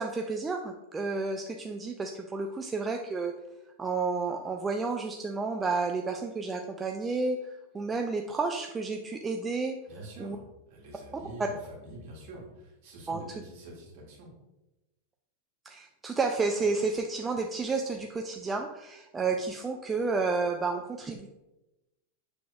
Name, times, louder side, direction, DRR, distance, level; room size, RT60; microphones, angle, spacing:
voice 1, 0.0-3.3 3.8-9.8 10.2-10.4 13.1-13.2 15.7-21.3, right 4 dB, 15° right, 3 dB, 0.3 m, -31 dB
voice 2, 9.9-14.3, right 2 dB, 50° right, -3 dB, 1.6 m, -46 dB
6.7 x 3.3 x 2.4 m, 0.98 s
figure-of-eight pair, 90°, 0 cm